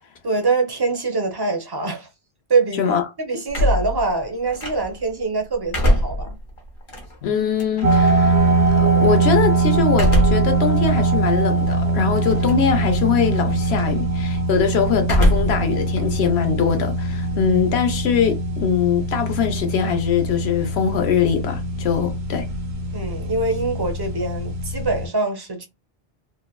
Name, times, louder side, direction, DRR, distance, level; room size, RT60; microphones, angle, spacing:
voice 1, 0.2-2.1 2.5-2.9 3.2-6.4 22.9-25.7, right 3 dB, 30° right, 0.5 m, -24 dB
sound 1, 3.5-5.1 5.5-8.1 9.9-10.6 11.1-11.2 12.2-12.7 13.0-13.4 15.0-15.7 16.0-17.4, equal, 60° left, 1.0 m, -22 dB
voice 2, 7.2-8.4 8.7-22.5, left 7 dB, 85° left, 1.0 m, -22 dB
sound 2, 7.8-25.1, right 3 dB, 90° right, 1.0 m, -22 dB
3.2 x 2.1 x 2.2 m
omnidirectional pair, 1.0 m